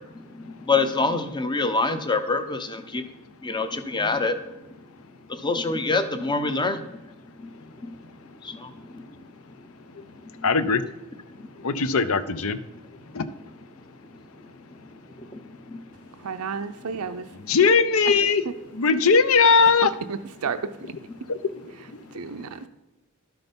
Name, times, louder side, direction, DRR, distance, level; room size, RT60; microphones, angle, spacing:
voice 1, 0.4-3.1 3.4-4.4 5.3-6.8 8.4-9.0 15.2-15.4 15.7-15.8, left 3 dB, 20° left, 9 dB, 0.7 m, -25 dB
voice 2, 10.4-10.8 11.6-12.6 13.1-13.3 17.5-18.4 18.7-19.9, left 5 dB, 70° left, 14 dB, 0.6 m, -19 dB
voice 3, 16.2-17.3 20.1-20.6 22.1-22.7, right 6 dB, 85° right, 10 dB, 0.5 m, -32 dB
12.0 x 6.0 x 5.3 m, 1.0 s
head